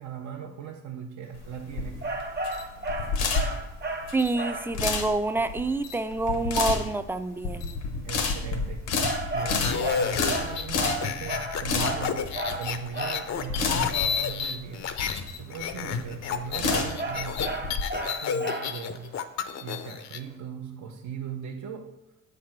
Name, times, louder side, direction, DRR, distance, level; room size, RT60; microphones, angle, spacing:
voice 1, 0.0-2.0 8.0-9.0 9.3-14.9 15.4-17.6 18.1-19.2 19.6-22.0, right 7 dB, 70° right, 2 dB, 0.7 m, -39 dB
sound 1, 1.3-17.8, left 4 dB, 90° left, 1.1 m, -31 dB
sound 2, 2.0-4.8 9.0-13.3 16.6-18.9, right 2 dB, 35° right, 0.9 m, -33 dB
voice 2, 4.1-7.8, right 2 dB, 5° right, 10 dB, 0.4 m, -27 dB
sound 3, 9.4-15.2 15.5-20.2, left 7 dB, 65° left, 0.6 m, -31 dB
7.8 x 3.4 x 5.8 m, 0.90 s
cardioid pair, 90°, 30 cm